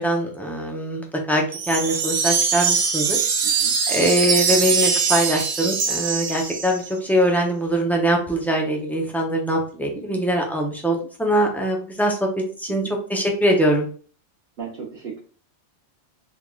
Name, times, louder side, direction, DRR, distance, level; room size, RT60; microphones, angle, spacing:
voice 1, 0.0-3.2 3.9-12.8 13.1-13.9, right 1 dB, ahead, 0 dB, 0.5 m, -22 dB
sound 1, 1.5-6.9, right 6 dB, 85° right, 1.0 m, -22 dB
voice 2, 3.4-3.7 4.5-4.7 9.9-10.2 12.7-12.9 14.6-15.2, right 6 dB, 60° right, -4 dB, 1.1 m, -37 dB
3.7 x 3.5 x 2.3 m, 0.40 s
omnidirectional pair, 1.2 m